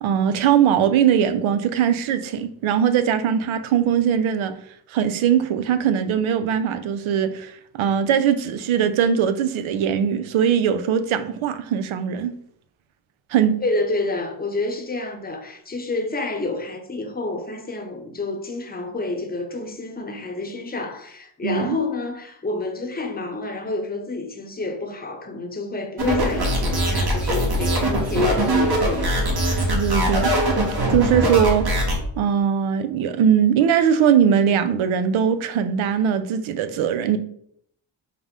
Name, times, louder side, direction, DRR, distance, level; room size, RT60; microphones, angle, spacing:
voice 1, 0.0-4.5 4.9-12.3 13.3-13.6 21.4-21.8 29.7-31.7 32.2-37.2, right 8 dB, 85° right, 0.5 m, -20 dB
voice 2, 13.6-29.2, left 3 dB, 20° left, 0.8 m, -28 dB
sound 1, 26.0-32.0, right 1 dB, 50° right, 1.3 m, -22 dB
4.8 x 2.1 x 3.6 m
cardioid pair, 60°, 47 cm